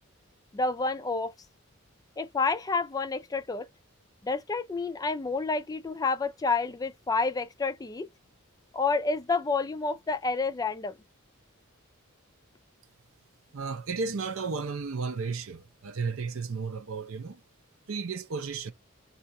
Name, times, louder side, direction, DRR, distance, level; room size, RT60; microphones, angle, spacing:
voice 1, 0.5-1.3 2.2-3.7 4.2-8.1 8.7-10.9, left 4 dB, 15° left, 0.3 m, -29 dB
voice 2, 13.5-17.4 17.9-18.7, right 4 dB, 70° right, 0.6 m, -33 dB
2.8 x 2.4 x 4.1 m
head